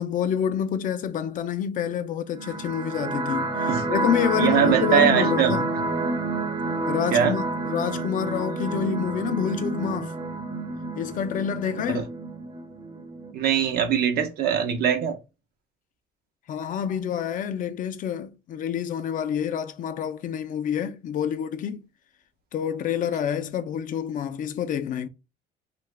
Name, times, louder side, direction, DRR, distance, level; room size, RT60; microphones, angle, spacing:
voice 1, 0.0-5.7 6.9-10.1 10.9-12.0 16.5-21.9 22.5-25.1, left 9 dB, 50° left, 0.5 m, -28 dB
sound 1, 2.3-13.3, right 3 dB, 30° right, 0.7 m, -29 dB
voice 2, 4.4-5.5 7.1-7.4 11.9-12.0 13.3-15.2, right 8 dB, 65° right, 0.7 m, -22 dB
2.7 x 2.4 x 3.2 m
cardioid pair, 110°, 17 cm